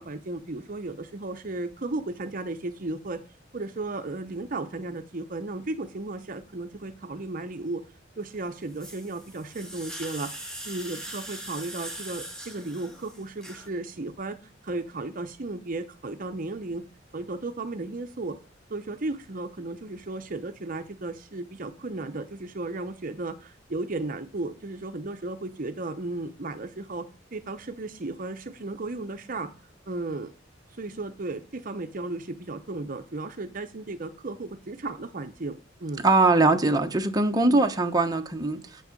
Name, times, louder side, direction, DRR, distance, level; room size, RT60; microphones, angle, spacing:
voice 1, 0.0-3.2 3.5-7.8 8.2-16.8 17.1-18.4 18.7-29.5 29.9-30.3 30.7-36.0 37.5-37.7, right 2 dB, 45° right, 0.8 m, -35 dB
sound 1, 8.3-13.7, right 1 dB, 5° left, 1.9 m, -41 dB
voice 2, 36.0-38.8, right 2 dB, 20° right, 1.0 m, -22 dB
9.1 x 7.6 x 5.2 m
head